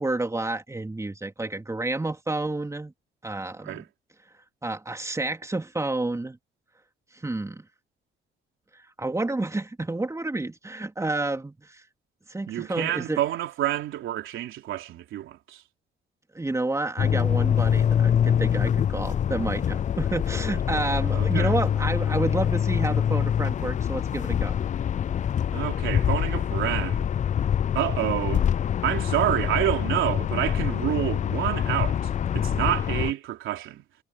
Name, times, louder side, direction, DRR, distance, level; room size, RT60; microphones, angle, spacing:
voice 1, 0.0-2.9 3.2-3.8 4.6-6.4 7.1-7.6 8.7-11.8 12.3-13.2 16.3-24.6, right 2 dB, 15° right, 3.3 m, -30 dB
voice 2, 12.5-15.6 21.0-21.5 25.5-27.1 27.7-28.5 28.8-33.8, right 13 dB, 85° right, 3.5 m, -28 dB
sound 1, 17.0-33.1, left 9 dB, 40° left, 0.4 m, -25 dB
cardioid pair, 90°, 20 cm